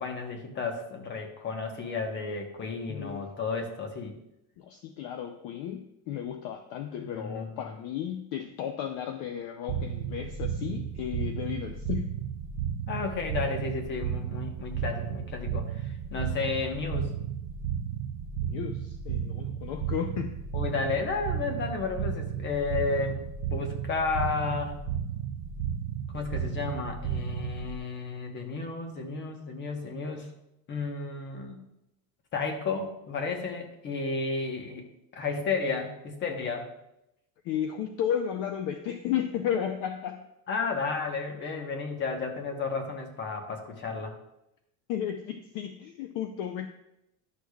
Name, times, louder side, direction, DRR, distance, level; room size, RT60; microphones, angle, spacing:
voice 1, 0.0-4.1 7.0-7.7 12.9-17.1 20.5-24.8 26.1-30.3 30.7-31.7 32.3-34.9 35.1-36.7 40.5-44.1, left 4 dB, 30° left, 4 dB, 1.0 m, -32 dB
voice 2, 2.9-3.3 4.6-12.2 18.4-20.4 37.4-40.3 44.9-46.7, left 9 dB, 50° left, 7 dB, 0.5 m, -33 dB
sound 1, 9.7-27.8, right 8 dB, 70° right, 0.5 m, -33 dB
11.5 x 6.4 x 2.3 m, 0.84 s
cardioid pair, 175°, 40 cm